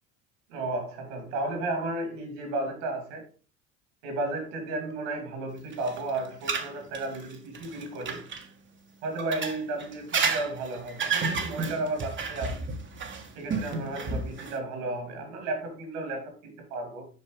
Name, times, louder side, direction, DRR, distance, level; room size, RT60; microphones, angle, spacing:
voice 1, 0.5-3.3 4.0-8.2 9.0-12.6 13.4-17.1, right 2 dB, 70° right, 2.7 m, -33 dB
sound 1, 5.7-8.4 9.2-14.6, right 4 dB, 30° right, 1.2 m, -31 dB
8.1 x 5.4 x 3.3 m
hypercardioid pair, 75°, 38 cm